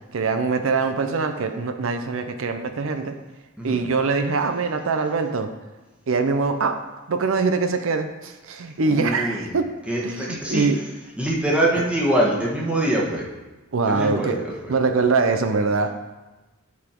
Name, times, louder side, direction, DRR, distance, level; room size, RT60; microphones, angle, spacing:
voice 1, 0.1-3.1 3.6-5.5 6.1-6.8 7.1-9.7 10.0-10.8 11.8-11.9 13.7-14.4 14.7-15.9, right 4 dB, 65° right, 7 dB, 0.6 m, -23 dB
voice 2, 8.8-9.5 9.9-10.7 11.2-13.2 13.9-14.7, right 1 dB, 5° right, -4 dB, 1.4 m, -24 dB
10.5 x 4.2 x 4.4 m, 1.1 s
head